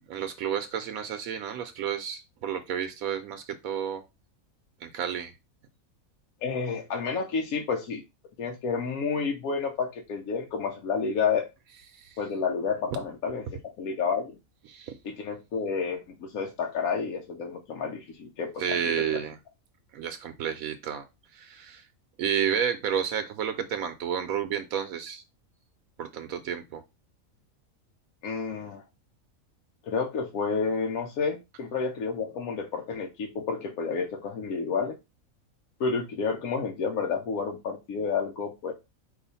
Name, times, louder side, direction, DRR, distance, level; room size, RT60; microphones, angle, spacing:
voice 1, 0.1-4.0 4.8-5.3 11.9-12.2 14.7-14.9 18.6-19.3 19.9-21.0 21.3-21.8 22.2-25.2 26.0-26.8, right 8 dB, 80° right, 8 dB, 1.0 m, -31 dB
voice 2, 6.4-8.0 8.4-11.5 12.2-13.5 13.8-14.4 15.0-19.2 28.2-28.8 29.8-35.0 35.8-38.7, left 5 dB, 80° left, 2 dB, 1.1 m, -30 dB
4.9 x 2.5 x 4.0 m, 0.24 s
omnidirectional pair, 1.5 m